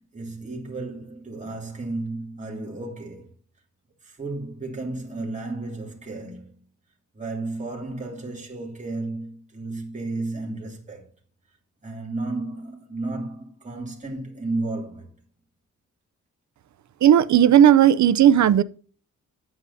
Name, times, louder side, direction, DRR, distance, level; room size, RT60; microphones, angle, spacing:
voice 1, 0.0-3.3 4.0-6.6 7.1-11.1 11.8-15.1, right 2 dB, 25° right, 2.9 m, -33 dB
voice 2, 17.0-18.6, right 10 dB, 65° right, 0.7 m, -15 dB
9.7 x 8.0 x 4.1 m
wide cardioid pair, 125°, 31 cm